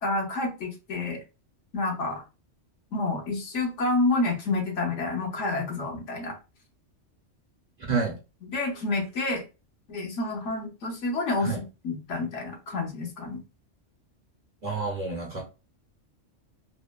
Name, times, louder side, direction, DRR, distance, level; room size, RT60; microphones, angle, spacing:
voice 1, 0.0-1.2 1.7-2.2 2.9-6.4 8.4-9.4 9.9-13.4, left 2 dB, 75° left, 1 dB, 1.1 m, -29 dB
voice 2, 14.6-15.4, right 4 dB, 45° right, -1 dB, 0.6 m, -29 dB
3.0 x 2.1 x 2.2 m, 0.29 s
omnidirectional pair, 1.3 m